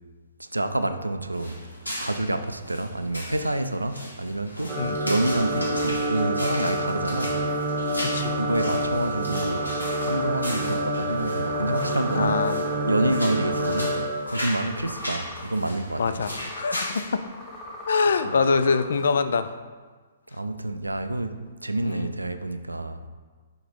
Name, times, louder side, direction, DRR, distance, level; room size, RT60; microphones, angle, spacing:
voice 1, 0.4-1.6 2.0-7.4 8.3-9.7 10.0-14.0 14.3-16.1 18.2-18.3 20.3-23.1, right 2 dB, 80° right, 0.4 m, -28 dB
sound 1, 1.3-17.0, equal, 85° left, 1.2 m, -37 dB
sound 2, 4.7-14.1, right 1 dB, 25° right, 0.8 m, -27 dB
sound 3, 5.2-19.2, left 1 dB, 15° left, 1.0 m, -42 dB
voice 2, 8.0-8.4 12.1-12.6 13.0-13.1 16.0-17.2 17.9-19.5 21.8-22.1, left 4 dB, 55° left, 0.3 m, -24 dB
5.3 x 3.8 x 4.8 m
figure-of-eight pair, 120°, 0 cm